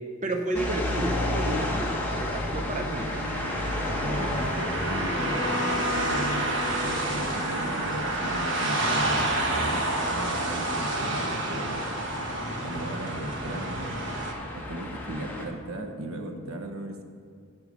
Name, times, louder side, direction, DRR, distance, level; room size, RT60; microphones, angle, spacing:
voice 1, 0.0-3.1, right 1 dB, 35° right, 3 dB, 0.6 m, -32 dB
sound 1, 0.5-15.4, left 1 dB, 10° left, 1.2 m, -33 dB
sound 2, 2.9-14.3, right 2 dB, 60° right, 1.3 m, -29 dB
voice 2, 3.9-11.8 12.6-13.9 14.5-17.0, right 1 dB, 85° right, 5 dB, 1.0 m, -36 dB
Bowed string instrument, 5.1-9.1, left 3 dB, 40° left, 1.5 m, -37 dB
9.5 x 8.0 x 5.3 m, 2.3 s
head